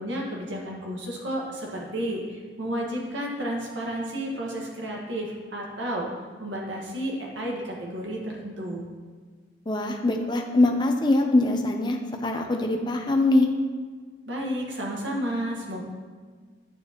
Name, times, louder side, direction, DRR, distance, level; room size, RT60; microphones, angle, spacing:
voice 1, 0.0-6.1 6.4-8.9 14.3-15.8, right 1 dB, 90° right, -2 dB, 1.6 m, -32 dB
voice 2, 9.7-13.5, left 2 dB, 25° left, 3 dB, 0.6 m, -23 dB
8.9 x 7.1 x 3.0 m, 1.5 s
head